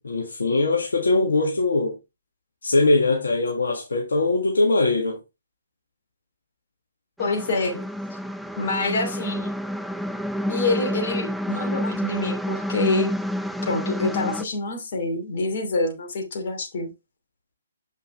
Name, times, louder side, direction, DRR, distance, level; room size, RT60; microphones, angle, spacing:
voice 1, 0.0-2.0 2.6-5.2, left 2 dB, 70° left, 1.7 m, -21 dB
voice 2, 7.2-7.8 8.6-9.5 10.5-13.1 13.6-16.9, left 3 dB, 50° left, 2.7 m, -26 dB
sound 1, 7.2-14.4, equal, ahead, 0.4 m, -29 dB
7.6 x 5.6 x 3.2 m
figure-of-eight pair, 130°, 0 cm